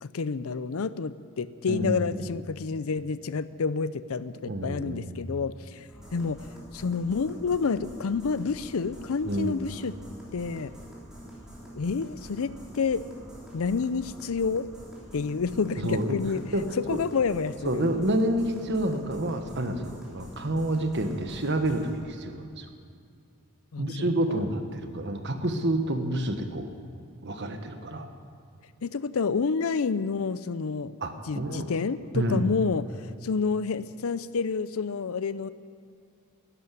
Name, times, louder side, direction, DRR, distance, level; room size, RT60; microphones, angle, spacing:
voice 1, 0.0-6.5 6.7-9.9 10.3-10.7 11.7-13.0 13.5-14.7 15.1-16.4 16.9-17.8 23.7-24.5 28.8-30.9 31.3-35.5, left 5 dB, 70° left, 15 dB, 0.5 m, -29 dB
voice 2, 1.7-2.2 4.5-5.1 9.2-9.6 15.8-16.2 16.5-16.6 16.9-17.0 17.6-22.7 23.8-26.7 27.2-28.1 31.0-31.8 32.1-32.5, right 1 dB, 50° right, 6 dB, 1.3 m, -28 dB
sound 1, 5.9-22.0, right 1 dB, 5° right, 3.4 m, -46 dB
12.5 x 11.0 x 9.3 m, 2.4 s
head